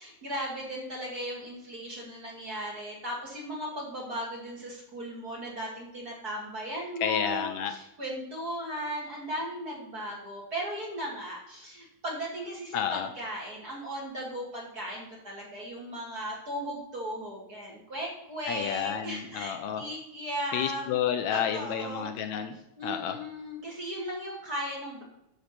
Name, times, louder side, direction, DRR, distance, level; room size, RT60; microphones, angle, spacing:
voice 1, 0.0-20.9 21.3-22.1 22.8-25.0, equal, 35° right, -3 dB, 2.5 m, -37 dB
voice 2, 7.0-7.7 12.7-13.1 18.5-19.8 20.5-23.2, left 9 dB, 80° left, 7 dB, 1.9 m, -30 dB
11.5 x 6.4 x 4.4 m, 0.83 s
omnidirectional pair, 3.4 m